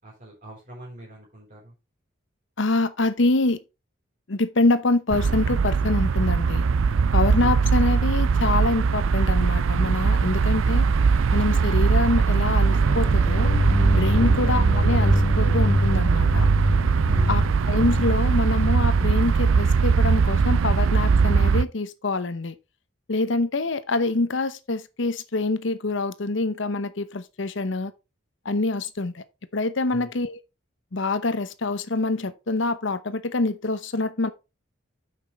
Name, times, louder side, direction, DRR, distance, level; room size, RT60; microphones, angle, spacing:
voice 1, 0.0-1.7 7.3-7.6 14.1-14.4 17.1-17.7 29.9-30.1, equal, 40° right, 4.7 m, -40 dB
voice 2, 2.6-3.6 4.3-6.7 7.1-10.9 11.3-13.5 13.9-16.5 17.3-17.4 17.7-22.5 23.1-27.9 28.4-29.2 29.5-30.4 30.9-34.3, left 2 dB, 65° left, 0.9 m, -25 dB
sound 1, 5.1-21.6, right 5 dB, 80° right, 0.4 m, -21 dB
sound 2, 12.5-19.7, left 1 dB, 30° left, 1.3 m, -26 dB
8.6 x 6.0 x 4.3 m
head